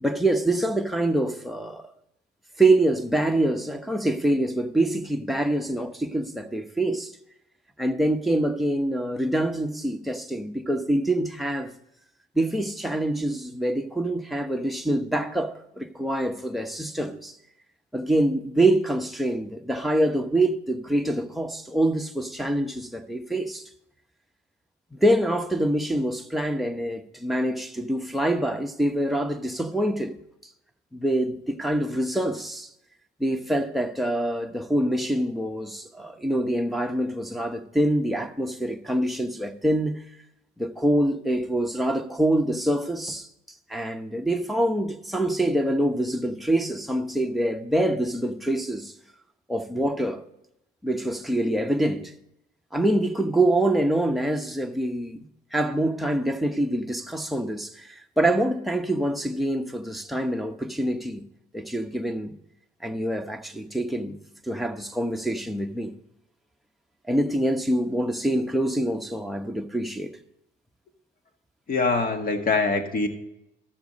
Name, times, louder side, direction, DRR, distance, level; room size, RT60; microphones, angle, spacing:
voice 1, 0.0-1.9 2.6-7.1 7.8-11.7 12.3-17.4 17.9-23.6 24.9-30.2 30.9-32.7 33.2-40.0 40.6-43.3 43.7-48.9 49.5-50.2 50.8-52.1 52.7-61.2 61.5-62.3 62.8-64.1 64.5-65.9 67.1-70.1, right 1 dB, ahead, 1.0 m, -25 dB
voice 2, 71.7-73.1, left 3 dB, 45° left, 1.8 m, -23 dB
13.5 x 6.9 x 4.1 m
cardioid pair, 90°, 20 cm